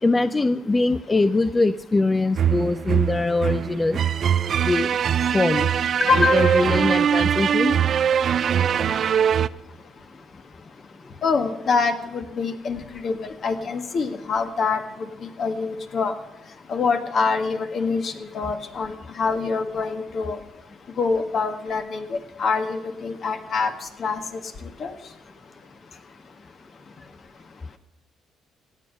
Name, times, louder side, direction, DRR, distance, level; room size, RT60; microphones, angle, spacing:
voice 1, 0.0-4.0 4.6-5.0 5.3-5.7 6.2-7.8, left 3 dB, 25° left, 13 dB, 0.5 m, -22 dB
sound 1, 2.3-9.5, right 8 dB, 55° right, 0.4 m, -22 dB
voice 2, 6.1-6.6 11.2-14.8 15.4-16.1 16.7-20.4 21.0-23.7 24.0-24.4 24.8-24.9, left 4 dB, 55° left, 7 dB, 1.6 m, -25 dB
16.0 x 8.5 x 6.4 m, 0.99 s
supercardioid pair, 65°, 0 cm